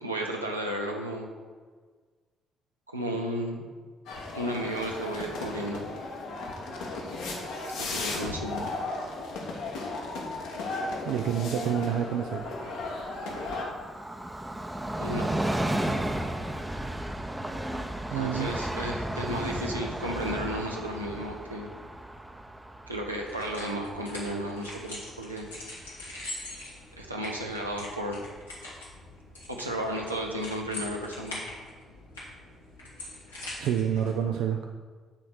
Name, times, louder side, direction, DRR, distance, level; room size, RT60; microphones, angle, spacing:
voice 1, 0.0-1.3 2.9-3.6 4.3-5.8 7.8-8.6 11.6-11.7 15.0-15.4 18.1-21.7 22.9-25.5 27.0-28.2 29.5-31.4, right 1 dB, 90° right, 0 dB, 0.7 m, -33 dB
sound 1, 4.1-13.6, left 2 dB, 65° left, 1.2 m, -35 dB
voice 2, 11.1-12.4 18.1-18.5 33.6-34.6, right 9 dB, 65° right, 4 dB, 0.4 m, -28 dB
Train, 12.2-25.5 25.8-25.9, right 1 dB, 10° right, 0.7 m, -34 dB
sound 2, 23.2-34.1, left 1 dB, 85° left, 1.6 m, -43 dB
7.7 x 4.2 x 6.2 m, 1.5 s
figure-of-eight pair, 45°, 0 cm